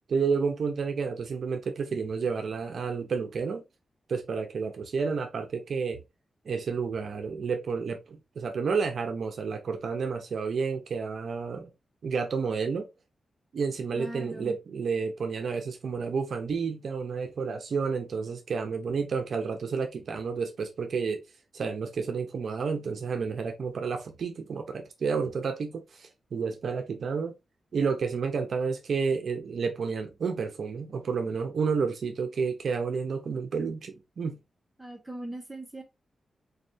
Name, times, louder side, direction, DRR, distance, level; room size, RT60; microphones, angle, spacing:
voice 1, 0.1-3.6 4.1-6.0 6.4-11.7 12.0-12.9 13.5-21.2 21.5-27.3 27.7-34.4, right 5 dB, 65° right, 0.8 m, -30 dB
voice 2, 13.9-14.6 34.8-35.8, right 1 dB, 5° right, 1.7 m, -39 dB
4.1 x 3.3 x 2.7 m
wide cardioid pair, 120°, 0 cm